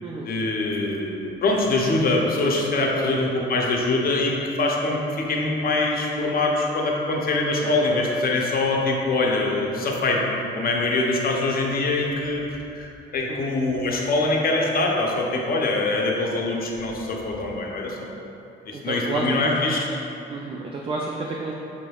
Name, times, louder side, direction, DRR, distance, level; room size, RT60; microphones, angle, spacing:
voice 1, 0.2-10.3 10.5-18.2 18.7-19.9, left 2 dB, 50° left, -1 dB, 0.6 m, -24 dB
voice 2, 7.5-8.0 13.3-13.5 18.7-19.4 20.3-21.5, right 3 dB, 30° right, -2 dB, 0.4 m, -31 dB
5.1 x 3.3 x 2.3 m, 2.8 s
cardioid pair, 90°, 20 cm